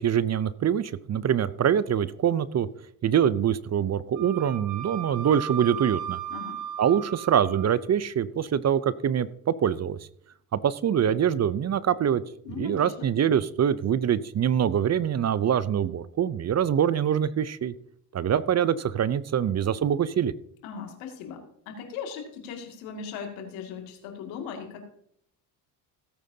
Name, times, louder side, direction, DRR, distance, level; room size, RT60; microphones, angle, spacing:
voice 1, 0.0-2.7 3.0-6.2 6.8-10.0 10.5-12.2 12.6-17.7 18.1-20.3, right 9 dB, 35° right, 17 dB, 0.6 m, -24 dB
Wind instrument woodwind instrument, 4.2-7.8, right 10 dB, 80° right, 1.4 m, -36 dB
voice 2, 6.3-6.6 12.4-13.1 20.6-24.8, left 6 dB, 85° left, 3 dB, 2.4 m, -38 dB
16.5 x 9.1 x 2.8 m, 0.71 s
supercardioid pair, 70°, 46 cm